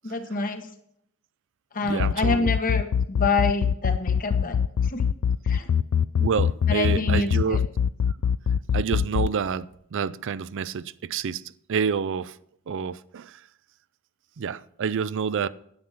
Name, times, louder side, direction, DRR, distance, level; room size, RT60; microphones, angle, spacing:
voice 1, 0.0-0.7 1.7-5.1 5.4-5.7 6.7-7.6, left 3 dB, 40° left, 1.2 m, -27 dB
voice 2, 1.8-2.5 6.2-7.6 8.7-11.4 11.7-12.4 12.7-13.4 14.4-15.5, right 6 dB, 60° right, 0.4 m, -28 dB
sound 1, 1.9-9.3, left 7 dB, 70° left, 0.4 m, -22 dB
9.6 x 8.9 x 5.8 m
head